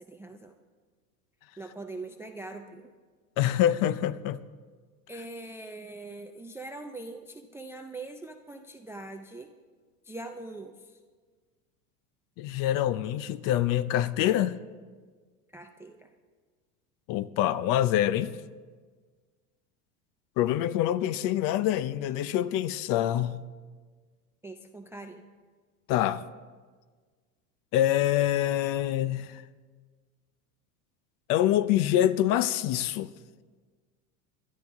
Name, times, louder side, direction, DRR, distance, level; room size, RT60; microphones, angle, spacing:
voice 1, 0.1-0.5 1.6-2.9 5.1-9.5 10.1-11.0 15.5-16.1 24.4-25.2, right 2 dB, 5° right, 0.3 m, -42 dB
voice 2, 3.4-4.4 12.4-14.6 17.1-18.4 20.4-23.4 25.9-26.2 27.7-29.4 31.3-33.1, left 12 dB, 45° left, 0.6 m, -25 dB
19.5 x 12.0 x 3.6 m
hypercardioid pair, 105°, 45 cm